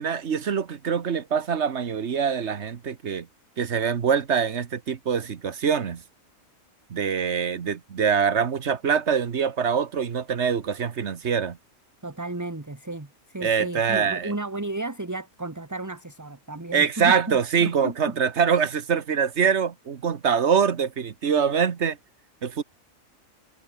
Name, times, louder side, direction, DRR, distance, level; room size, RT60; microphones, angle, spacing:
voice 1, 0.0-3.3 3.6-6.0 6.9-11.6 13.4-14.3 16.7-22.0 22.4-22.6, right 7 dB, 55° right, 1.4 m, -24 dB
voice 2, 12.0-18.2 20.2-20.4, right 2 dB, 15° right, 1.4 m, -34 dB
omnidirectional pair, 1.4 m